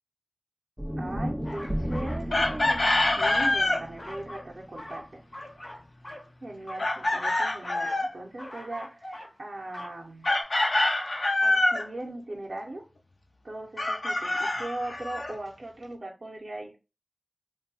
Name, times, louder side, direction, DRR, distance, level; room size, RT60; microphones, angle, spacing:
sound 1, 0.8-5.0, equal, 10° right, 0.3 m, -34 dB
voice 1, 1.0-5.2 6.4-10.3 11.4-12.8 13.4-16.8, right 1 dB, 75° right, 0.5 m, -39 dB
sound 2, 1.4-2.9 3.2-4.5 4.8-6.3 6.6-8.1 8.4-9.4 9.6-10.0 10.2-10.4, left 1 dB, 50° left, 0.7 m, -43 dB
Chicken rooster, 2.3-3.8 6.8-8.1 10.2-11.9 13.8-15.3, left 2 dB, 80° left, 0.5 m, -25 dB
2.6 x 2.2 x 2.6 m
wide cardioid pair, 55°, 0 cm